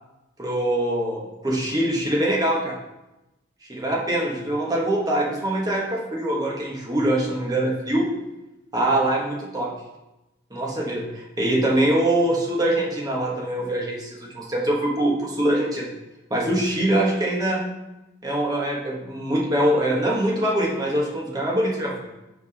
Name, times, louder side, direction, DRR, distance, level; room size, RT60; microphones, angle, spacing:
voice 1, 0.4-2.8 3.7-8.1 8.7-9.7 10.5-15.9 16.3-17.6 18.2-22.1, right 1 dB, 20° right, -3 dB, 1.2 m, -23 dB
5.6 x 4.6 x 5.2 m, 0.97 s
head